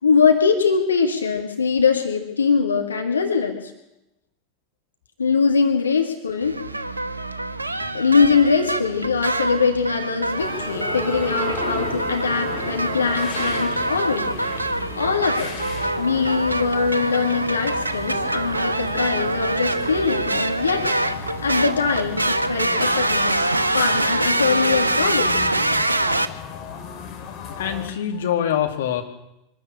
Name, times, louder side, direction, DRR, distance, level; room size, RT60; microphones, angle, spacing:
voice 1, 0.0-3.7 5.2-6.6 7.9-14.3 15.0-15.5 16.0-20.9 21.4-25.5, left 5 dB, 75° left, 4 dB, 2.0 m, -22 dB
sound 1, 6.4-26.3, right 2 dB, 80° right, 1.0 m, -25 dB
sound 2, 10.1-16.6, left 1 dB, 15° left, 3.3 m, -36 dB
sound 3, 10.4-27.9, left 6 dB, 35° left, 3.4 m, -36 dB
voice 2, 26.9-29.0, left 10 dB, 60° left, 4 dB, 2.2 m, -26 dB
24.0 x 13.0 x 8.7 m, 0.90 s
figure-of-eight pair, 85°, 0 cm